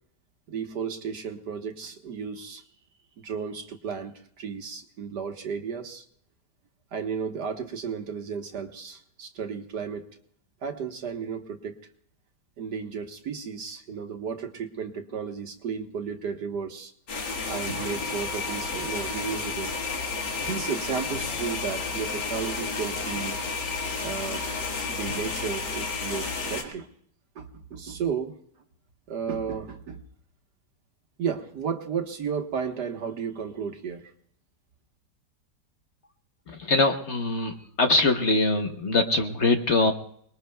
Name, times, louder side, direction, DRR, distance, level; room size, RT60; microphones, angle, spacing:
voice 1, 0.5-2.6 3.2-6.0 6.9-10.1 10.6-11.8 12.6-16.9 17.5-19.7 20.4-23.4 24.0-24.4 24.9-26.9 27.4-28.3 29.1-30.0 31.2-34.1, right 6 dB, 75° right, 4 dB, 1.9 m, -33 dB
sound 1, 17.1-26.6, left 4 dB, 75° left, 2.4 m, -31 dB
voice 2, 36.5-39.9, left 2 dB, 45° left, 5 dB, 1.1 m, -23 dB
30.0 x 20.5 x 2.3 m, 0.65 s
omnidirectional pair, 1.8 m